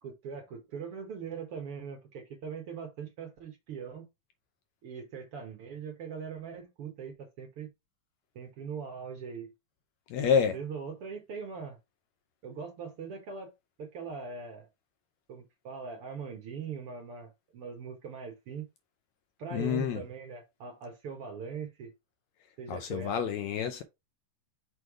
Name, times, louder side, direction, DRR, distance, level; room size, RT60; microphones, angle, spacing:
voice 1, 0.0-4.1 4.8-7.7 8.3-9.5 10.2-11.8 12.4-13.5 13.8-14.7 15.3-18.7 19.4-21.9 22.6-23.2, right 6 dB, 55° right, 1.7 m, -41 dB
voice 2, 10.1-10.6 19.5-20.0 22.7-23.8, left 7 dB, 75° left, 1.7 m, -28 dB
6.2 x 3.3 x 4.7 m
omnidirectional pair, 3.6 m